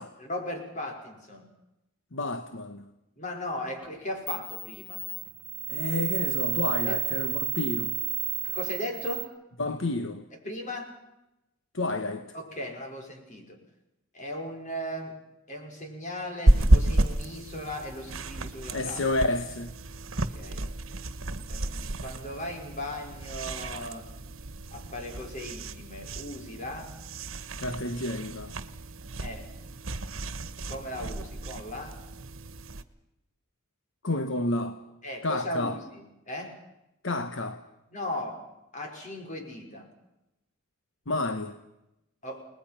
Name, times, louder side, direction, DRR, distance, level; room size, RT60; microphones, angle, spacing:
voice 1, 0.2-1.5 3.2-5.0 6.8-7.0 8.4-9.3 10.4-10.9 12.3-13.6 14.1-15.2 15.5-19.1 20.3-20.6 21.5-24.1 24.7-26.9 29.2-29.5 30.6-32.0 35.0-36.6 37.9-38.5 38.7-39.9 42.2-42.5, left 1 dB, 35° left, 5.5 m, -37 dB
voice 2, 2.1-2.8 5.7-8.0 9.6-10.3 11.7-12.3 18.7-19.8 27.6-28.5 34.0-34.8 35.2-35.8 37.0-37.6 41.1-41.5, left 2 dB, 65° left, 1.2 m, -30 dB
sound 1, 3.8-3.9 4.3-9.2, right 9 dB, 5° right, 2.1 m, -32 dB
sound 2, 16.5-32.8, right 1 dB, 80° right, 1.4 m, -30 dB
30.0 x 20.5 x 5.8 m
head